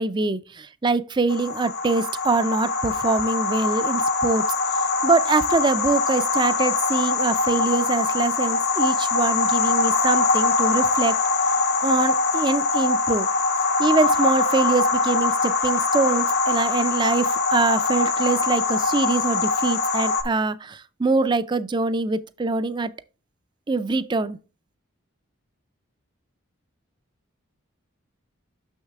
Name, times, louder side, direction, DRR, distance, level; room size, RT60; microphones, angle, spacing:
voice 1, 0.0-4.4 5.0-11.2 11.8-13.3 13.8-22.9 23.7-24.4, right 3 dB, 20° right, 0.4 m, -24 dB
sound 1, 1.3-20.2, left 3 dB, 50° left, 0.9 m, -23 dB
6.5 x 6.4 x 3.6 m
head